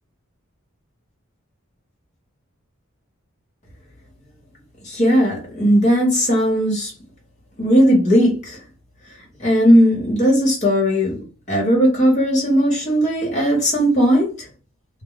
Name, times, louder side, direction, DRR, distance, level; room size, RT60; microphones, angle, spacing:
voice 1, 4.8-6.9 7.6-8.6 9.4-11.2 11.5-14.5, equal, 35° left, 1.0 m, -17 dB
2.1 x 2.1 x 3.7 m
head